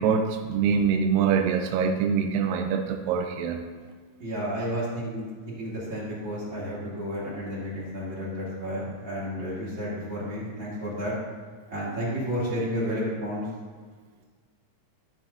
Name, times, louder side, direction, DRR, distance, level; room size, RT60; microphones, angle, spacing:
voice 1, 0.0-3.6, right 6 dB, 85° right, 5 dB, 2.2 m, -24 dB
voice 2, 4.2-11.1 11.7-13.5, equal, 35° right, -8 dB, 3.0 m, -31 dB
13.5 x 7.0 x 2.7 m, 1.5 s
omnidirectional pair, 4.0 m